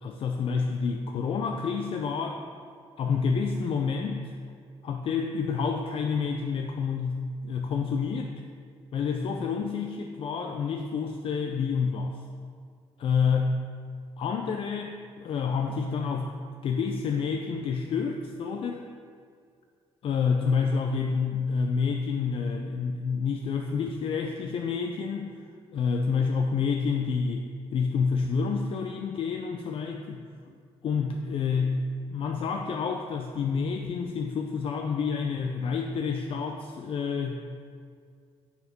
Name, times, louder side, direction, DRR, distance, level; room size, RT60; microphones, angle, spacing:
voice 1, 0.0-2.4 3.0-4.3 4.8-8.4 8.9-12.2 13.0-13.7 14.2-16.3 16.6-18.9 20.0-25.3 25.7-30.2 30.8-37.3, left 5 dB, 55° left, 3 dB, 0.4 m, -28 dB
6.7 x 4.4 x 5.9 m, 2.2 s
cardioid pair, 120°, 11 cm